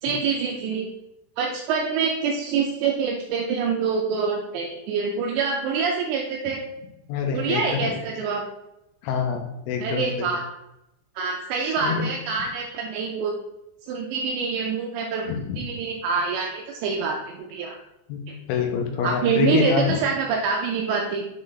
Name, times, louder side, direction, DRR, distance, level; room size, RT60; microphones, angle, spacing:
voice 1, 0.0-0.9 1.4-6.6 7.3-8.4 9.8-10.4 11.2-13.4 13.9-15.3 15.6-17.8 18.3-18.4 19.0-21.2, right 5 dB, 85° right, 0 dB, 2.5 m, -26 dB
voice 2, 7.1-8.0 9.0-10.3 11.7-12.1 15.3-15.6 18.1-18.2 18.5-20.0, left 6 dB, 85° left, 2 dB, 3.4 m, -26 dB
7.8 x 3.3 x 3.9 m, 0.89 s
omnidirectional pair, 5.5 m